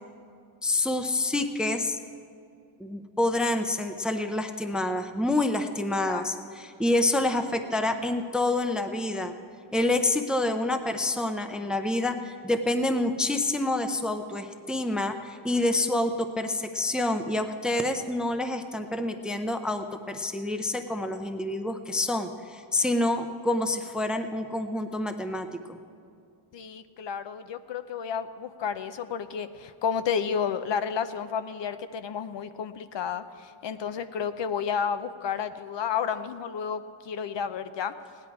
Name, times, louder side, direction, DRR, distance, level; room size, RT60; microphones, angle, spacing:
voice 1, 0.6-2.0 2.8-9.3 9.7-25.8, left 2 dB, ahead, 7 dB, 0.5 m, -27 dB
voice 2, 26.5-37.9, left 7 dB, 60° left, 11 dB, 0.6 m, -31 dB
17.0 x 10.5 x 4.7 m, 2.4 s
wide cardioid pair, 140°, 49 cm